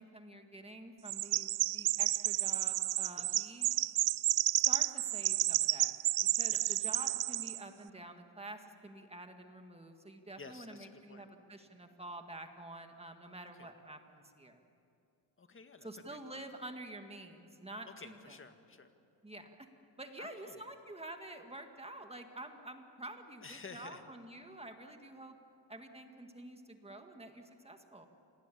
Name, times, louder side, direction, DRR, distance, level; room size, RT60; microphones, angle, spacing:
voice 1, 0.0-3.7 4.5-5.9 6.3-14.6 15.8-18.4 19.2-19.6 20.0-25.4 25.7-28.1, right 1 dB, 15° right, 5 dB, 1.9 m, -48 dB
Chirp tweet, 1.1-7.6, right 15 dB, 55° right, 0.5 m, -31 dB
voice 2, 10.4-11.2 13.5-13.7 15.4-16.4 17.9-18.9 20.2-20.6 23.4-24.0, left 4 dB, 30° left, 7 dB, 1.9 m, -52 dB
27.0 x 19.5 x 8.6 m, 2.5 s
cardioid pair, 115°, 44 cm